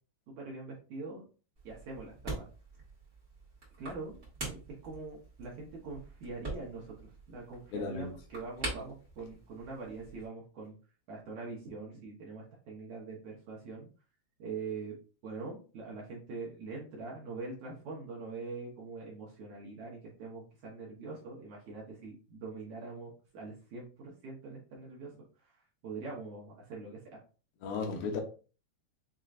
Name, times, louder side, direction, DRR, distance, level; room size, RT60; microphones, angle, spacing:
voice 1, 0.3-1.2 1.6-2.5 3.8-10.8 11.1-13.9 14.4-14.9 15.2-25.1 25.4-27.0, right 3 dB, 70° right, -3 dB, 1.8 m, -43 dB
sound 1, 1.5-10.3, right 2 dB, 35° right, 1.1 m, -45 dB
voice 2, 7.7-8.1 27.6-28.2, left 4 dB, 75° left, 3 dB, 2.5 m, -34 dB
6.6 x 2.9 x 2.5 m, 0.36 s
omnidirectional pair, 4.6 m